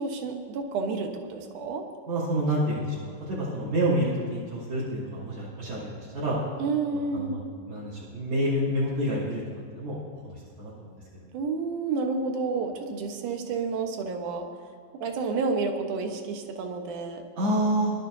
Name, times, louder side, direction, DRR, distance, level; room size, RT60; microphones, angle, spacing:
voice 1, 0.0-1.8 6.6-7.4 11.3-14.4 15.0-17.2, right 4 dB, 75° right, 4 dB, 1.8 m, -30 dB
voice 2, 2.1-6.4 6.9-7.4 7.7-9.4 9.7-11.3 17.4-17.9, right 1 dB, 55° right, -6 dB, 4.6 m, -28 dB
25.0 x 12.5 x 2.7 m, 2.1 s
omnidirectional pair, 5.2 m